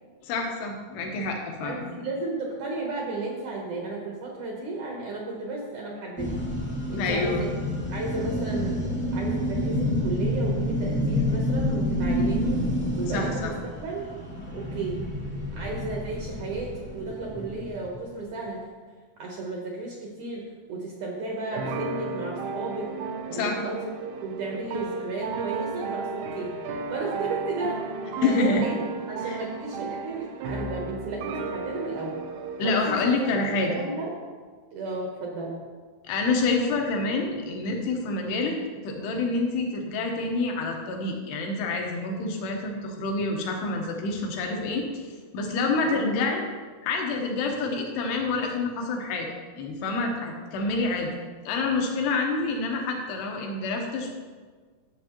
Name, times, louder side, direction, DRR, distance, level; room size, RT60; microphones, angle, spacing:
voice 1, 0.2-1.9 7.0-7.5 13.1-13.5 23.3-23.6 28.2-28.6 29.2-29.4 32.6-33.7 36.0-38.6 38.8-45.0 45.3-46.4 46.8-51.1 51.4-54.1, left 3 dB, 75° left, 1 dB, 3.1 m, -27 dB
voice 2, 1.6-6.4 6.9-7.6 7.9-8.8 9.1-12.6 13.0-14.1 14.5-15.1 15.6-18.6 19.2-20.4 20.7-22.9 23.3-23.9 24.2-26.5 26.9-27.8 28.2-28.7 29.1-32.2 32.6-34.1 34.7-35.5 45.8-46.1, right 3 dB, 70° right, -2 dB, 2.0 m, -33 dB
sound 1, 6.2-18.1, left 1 dB, 10° left, 0.8 m, -29 dB
sound 2, 21.5-32.8, right 4 dB, 85° right, 2.6 m, -34 dB
12.5 x 7.5 x 3.0 m, 1.5 s
omnidirectional pair, 4.7 m